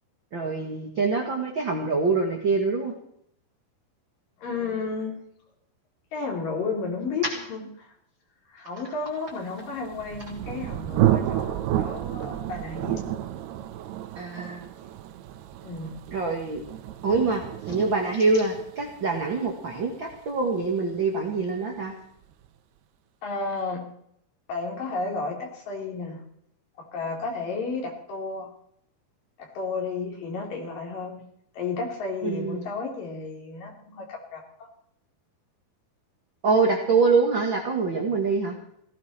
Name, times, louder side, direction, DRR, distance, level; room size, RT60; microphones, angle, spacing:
voice 1, 0.3-2.9 7.2-7.3 14.1-14.7 16.1-16.6 17.0-21.9 32.2-32.7 36.4-38.5, right 4 dB, 40° right, 1 dB, 1.8 m, -25 dB
voice 2, 4.4-5.2 6.1-7.9 8.5-13.1 15.6-15.9 23.2-23.9 24.5-26.2 26.8-28.5 29.4-31.2 31.5-34.7, left 4 dB, 60° left, 0 dB, 4.9 m, -32 dB
Thunder, 9.6-21.2, right 12 dB, 85° right, 2.8 m, -30 dB
17.5 x 16.0 x 4.4 m, 0.71 s
omnidirectional pair, 4.6 m